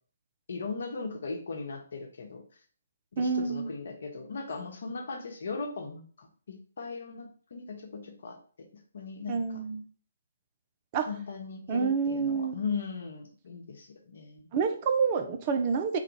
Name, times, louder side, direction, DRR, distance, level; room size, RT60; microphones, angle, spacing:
voice 1, 0.5-2.4 3.1-8.4 8.9-9.6 11.0-14.5, left 4 dB, 60° left, 4 dB, 1.1 m, -38 dB
voice 2, 3.2-3.7 9.3-9.8 10.9-11.1 11.7-12.5 14.5-16.0, right 5 dB, 30° right, 6 dB, 0.7 m, -28 dB
4.1 x 2.5 x 4.7 m, 0.43 s
figure-of-eight pair, 140°, 0 cm